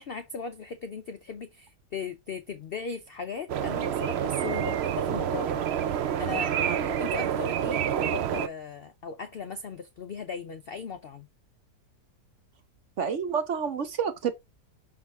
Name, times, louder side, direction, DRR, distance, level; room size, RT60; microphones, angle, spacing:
voice 1, 0.0-6.5 6.8-11.3, left 5 dB, 65° left, 0.5 m, -38 dB
sound 1, 3.5-8.5, right 9 dB, 85° right, 0.5 m, -28 dB
voice 2, 13.0-14.3, right 7 dB, 55° right, 0.9 m, -29 dB
5.9 x 4.7 x 3.5 m
omnidirectional pair, 1.8 m